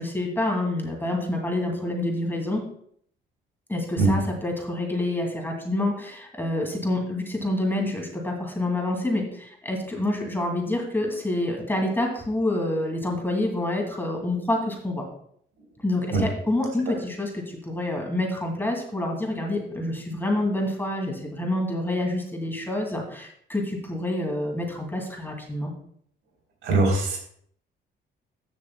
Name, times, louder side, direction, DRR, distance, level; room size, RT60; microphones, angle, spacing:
voice 1, 0.0-2.6 3.7-15.0 15.8-25.7, left 1 dB, 10° left, 1 dB, 2.4 m, -27 dB
voice 2, 26.6-27.2, right 3 dB, 85° right, 0 dB, 3.4 m, -21 dB
14.5 x 6.8 x 2.2 m, 0.65 s
cardioid pair, 90°, 20 cm